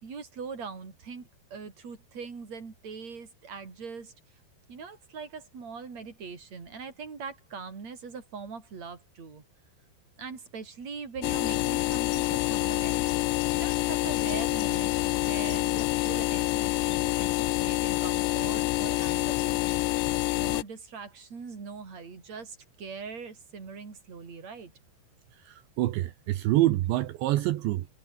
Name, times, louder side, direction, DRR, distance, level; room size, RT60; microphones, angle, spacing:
voice 1, 0.0-4.1 4.7-9.4 10.2-13.1 13.5-20.1 20.4-24.7, right 5 dB, 35° right, 5.7 m, -41 dB
sound 1, 11.2-20.6, left 19 dB, 80° left, 2.7 m, -27 dB
voice 2, 25.3-27.9, right 15 dB, 75° right, 3.4 m, -26 dB
omnidirectional pair, 5.4 m